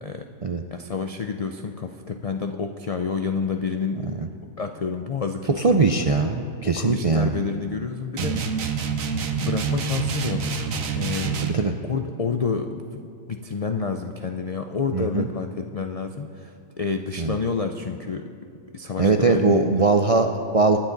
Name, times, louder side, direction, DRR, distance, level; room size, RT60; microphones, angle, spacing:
voice 1, 0.7-4.1 4.6-5.9 6.6-8.4 9.4-18.3 18.7-19.9, left 5 dB, 60° left, 5 dB, 0.3 m, -29 dB
voice 2, 5.6-7.4 8.2-8.3 11.4-11.7 14.9-15.3 17.2-17.3 19.0-20.8, right 3 dB, 50° right, 4 dB, 0.4 m, -21 dB
sound 1, 8.2-11.7, right 6 dB, 75° right, 1.3 m, -27 dB
24.5 x 10.0 x 4.0 m, 2.5 s
omnidirectional pair, 1.4 m